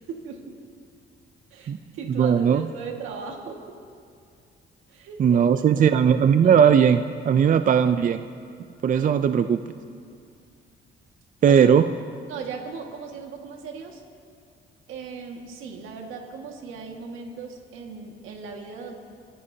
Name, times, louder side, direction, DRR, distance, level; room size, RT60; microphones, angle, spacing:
voice 1, 0.1-0.6 1.5-3.8 4.9-5.4 5.8-5.9 6.4-6.6 11.5-11.6 12.3-14.0 14.9-18.9, right 5 dB, 90° right, 2 dB, 1.9 m, -38 dB
voice 2, 2.2-2.7 5.2-8.2 8.8-9.6 11.4-11.8, right 7 dB, 40° right, 10 dB, 0.5 m, -18 dB
25.0 x 15.0 x 2.8 m, 2.3 s
cardioid pair, 90°, 20 cm